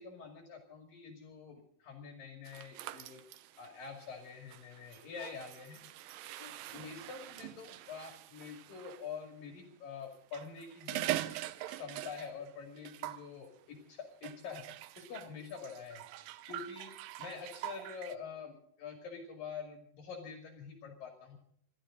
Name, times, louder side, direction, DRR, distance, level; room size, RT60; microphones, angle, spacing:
voice 1, 0.0-3.2 3.6-5.8 6.4-11.3 11.7-14.7 15.0-16.1 16.5-16.9 17.2-21.4, left 6 dB, 60° left, 3 dB, 3.8 m, -46 dB
sound 1, 2.5-9.1 10.1-12.5 12.8-13.3 14.2-18.2, right 14 dB, 75° right, 2.2 m, -43 dB
28.5 x 12.5 x 3.8 m, 0.66 s
omnidirectional pair, 4.6 m